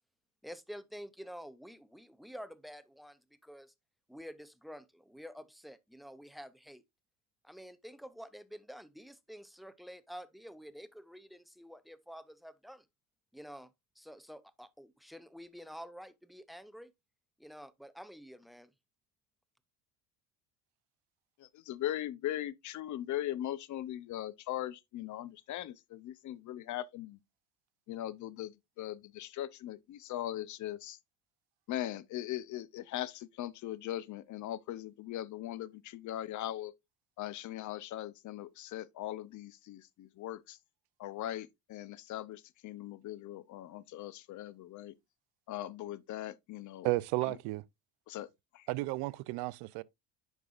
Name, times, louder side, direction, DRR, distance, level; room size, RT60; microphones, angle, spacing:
voice 1, 0.4-3.7 4.1-6.8 7.4-12.9 13.3-13.7 14.0-16.9 17.4-18.7, equal, ahead, 0.5 m, -49 dB
voice 2, 21.4-27.2 27.9-31.0 31.7-36.7 37.2-40.6 41.0-44.9 45.5-46.9 48.1-48.3 48.5-48.7, left 13 dB, 50° left, 0.7 m, -40 dB
voice 3, 46.8-47.6 48.7-49.8, right 21 dB, 75° right, 0.5 m, -33 dB
9.4 x 5.4 x 2.4 m
cardioid pair, 110°, 38 cm